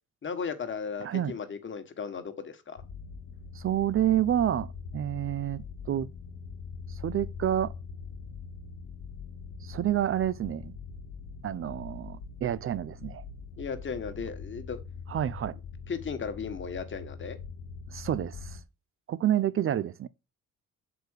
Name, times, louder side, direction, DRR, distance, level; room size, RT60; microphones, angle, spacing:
voice 1, 0.2-2.8 13.6-14.8 15.9-17.4, left 6 dB, 40° left, 1.5 m, -36 dB
voice 2, 1.0-1.3 3.5-6.1 6.9-7.7 9.6-10.8 11.4-13.2 15.1-15.6 17.9-18.6 19.1-20.1, right 11 dB, 45° right, 0.4 m, -29 dB
sound 1, 2.8-18.6, left 5 dB, 85° left, 1.0 m, -43 dB
6.6 x 4.9 x 6.5 m
cardioid pair, 90°, 30 cm